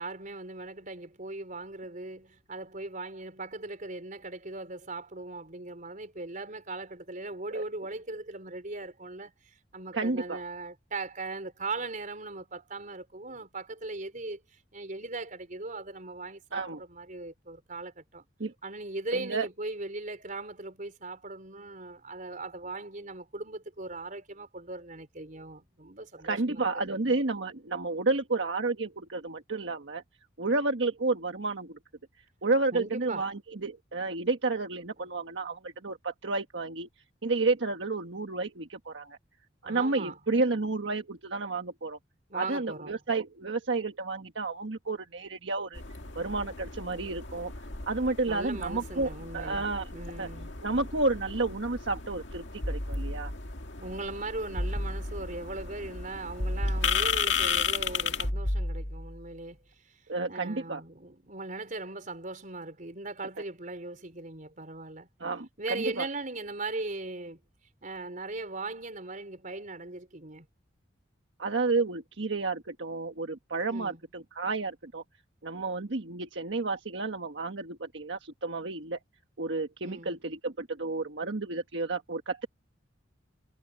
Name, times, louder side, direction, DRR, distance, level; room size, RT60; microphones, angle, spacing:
voice 1, 0.0-14.4 14.7-18.2 18.6-27.0 32.7-33.3 39.6-40.1 42.3-43.0 48.3-49.7 49.9-50.5 53.8-59.6 60.3-65.1 65.6-67.4 67.8-70.5 73.7-74.0 79.8-80.2, right 2 dB, 45° right, 4.6 m, -39 dB
voice 2, 9.9-10.4 16.5-16.8 18.4-18.5 19.1-19.5 26.2-30.0 30.4-31.8 32.4-36.9 37.2-39.2 39.6-42.0 42.3-45.8 46.1-47.5 47.9-49.9 50.2-50.3 50.6-53.3 60.1-60.8 65.2-66.1 71.4-75.0 75.4-79.0 79.4-82.5, right 3 dB, 75° right, 1.4 m, -31 dB
sound 1, 45.7-58.3, left 7 dB, 75° left, 2.1 m, -35 dB
sound 2, 52.6-53.6 54.6-55.5 56.4-57.5 58.2-59.3, equal, 55° left, 3.8 m, -32 dB
head